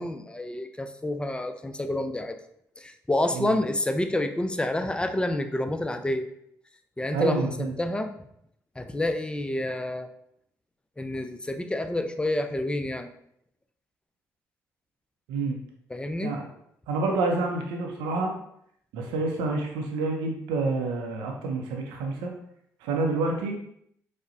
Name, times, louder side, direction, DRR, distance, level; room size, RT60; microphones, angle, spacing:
voice 1, 0.0-2.4 2.8-6.3 7.0-7.4 7.8-8.1 8.8-10.1 11.0-13.1 15.9-16.3, left 1 dB, 10° left, 7 dB, 0.4 m, -28 dB
voice 2, 7.1-7.7 15.3-15.6 16.2-16.5 16.9-18.3 18.9-22.3 22.8-23.6, right 3 dB, 85° right, 2 dB, 0.5 m, -28 dB
4.8 x 2.1 x 2.7 m, 0.71 s
hypercardioid pair, 45°, 8 cm